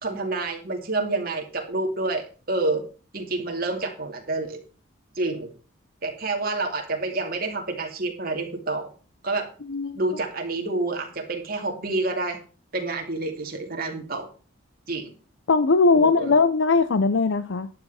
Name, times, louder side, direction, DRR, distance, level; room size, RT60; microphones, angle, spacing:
voice 1, 0.0-2.8 3.1-4.6 5.2-5.5 6.0-8.9 9.2-9.5 9.9-12.4 12.7-14.3 14.9-15.1 15.9-16.3, right 2 dB, 45° right, 2 dB, 2.5 m, -28 dB
voice 2, 9.7-10.0 15.5-17.7, left 4 dB, 65° left, 13 dB, 0.6 m, -20 dB
12.0 x 9.4 x 4.2 m, 0.36 s
head